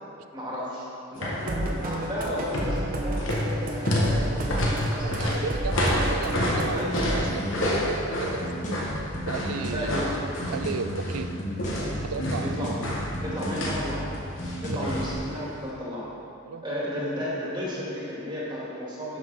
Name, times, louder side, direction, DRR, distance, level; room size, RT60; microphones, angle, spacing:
voice 1, 0.3-0.8 1.1-5.4 6.7-7.0 9.7-10.1 12.4-12.8 13.2-14.1 14.6-16.1 16.6-19.2, equal, 20° right, -7 dB, 1.7 m, -33 dB
sound 1, 1.1-1.5 1.8-2.1 2.4-11.3 11.6-13.9 14.4-15.2 15.5-15.6, left 1 dB, 60° left, 1.3 m, -29 dB
sound 2, 1.4-7.2, right 1 dB, 40° right, 0.8 m, -31 dB
voice 2, 5.0-8.9 9.3-9.9 10.5-11.3 12.0-12.5 14.7-14.9 16.4-16.6, right 5 dB, 85° right, 9 dB, 0.5 m, -34 dB
sound 3, 7.1-15.1, equal, 35° left, 1.3 m, -34 dB
12.0 x 5.4 x 3.9 m, 2.6 s
head